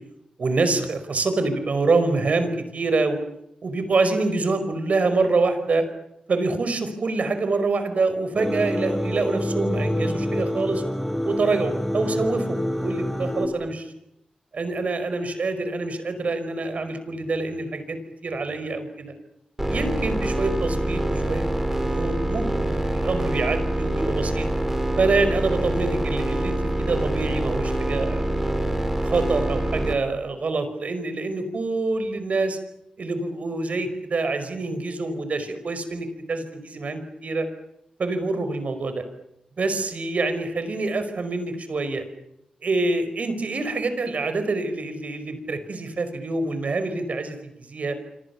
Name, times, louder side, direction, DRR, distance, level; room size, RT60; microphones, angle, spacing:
voice 1, 0.4-3.2 3.6-5.9 6.3-10.8 11.2-13.9 14.5-18.0 18.2-19.1 19.7-21.4 21.7-24.5 25.0-28.4 29.0-32.6 33.0-37.5 38.0-39.0 39.6-42.0 42.6-48.0, right 3 dB, 65° right, 10 dB, 5.1 m, -26 dB
sound 1, 8.3-13.5, equal, 5° left, 4.8 m, -27 dB
sound 2, 19.6-29.9, right 1 dB, 15° right, 5.2 m, -25 dB
26.5 x 26.5 x 7.1 m, 0.80 s
cardioid pair, 65°, 3 cm